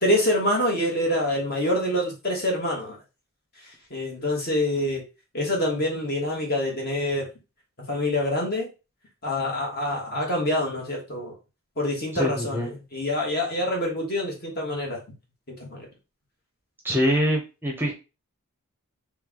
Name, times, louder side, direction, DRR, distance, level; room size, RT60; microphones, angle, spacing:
voice 1, 0.0-3.0 3.9-5.0 5.3-7.3 7.9-8.7 9.2-11.3 11.8-15.0 15.5-15.9, left 1 dB, 45° left, -1 dB, 1.4 m, -26 dB
voice 2, 12.2-12.7 16.8-17.9, equal, 10° right, 1 dB, 0.6 m, -24 dB
3.3 x 3.1 x 3.6 m, 0.30 s
head